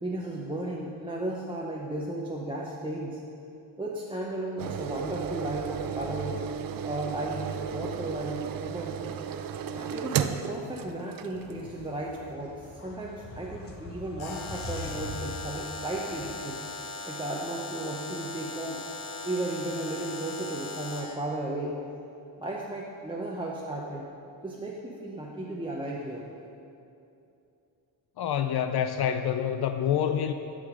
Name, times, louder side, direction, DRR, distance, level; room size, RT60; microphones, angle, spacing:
voice 1, 0.0-3.2 3.8-6.4 6.8-9.0 9.7-16.6 17.1-18.8 19.2-21.8 22.4-24.1 24.4-26.2, right 1 dB, 10° right, -4 dB, 0.7 m, -34 dB
sound 1, 4.6-11.6 12.1-12.2, right 8 dB, 50° right, 0.5 m, -34 dB
sound 2, 11.3-16.4, left 2 dB, 30° left, 1.0 m, -43 dB
Alarm, 14.2-21.2, left 3 dB, 90° left, 1.3 m, -39 dB
voice 2, 28.2-30.3, left 9 dB, 60° left, 8 dB, 0.5 m, -27 dB
12.0 x 5.1 x 5.0 m, 2.7 s
cardioid pair, 110°, 45 cm